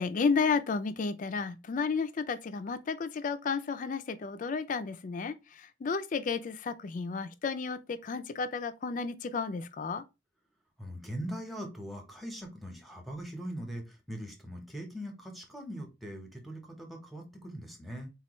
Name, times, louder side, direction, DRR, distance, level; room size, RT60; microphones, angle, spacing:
voice 1, 0.0-10.0, left 5 dB, 45° left, 0.4 m, -32 dB
voice 2, 10.8-18.1, equal, ahead, 0.9 m, -41 dB
4.3 x 2.3 x 3.0 m
head